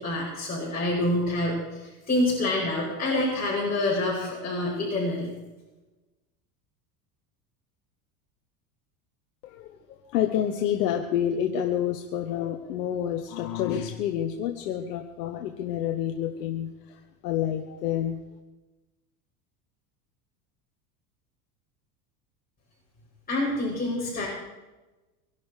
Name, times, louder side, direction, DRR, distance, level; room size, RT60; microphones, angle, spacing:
voice 1, 0.0-5.3 23.3-24.3, left 1 dB, 20° left, -9 dB, 7.7 m, -27 dB
voice 2, 9.4-18.2, left 10 dB, 85° left, 4 dB, 1.5 m, -29 dB
24.0 x 11.5 x 5.0 m, 1.1 s
supercardioid pair, 105°, 47 cm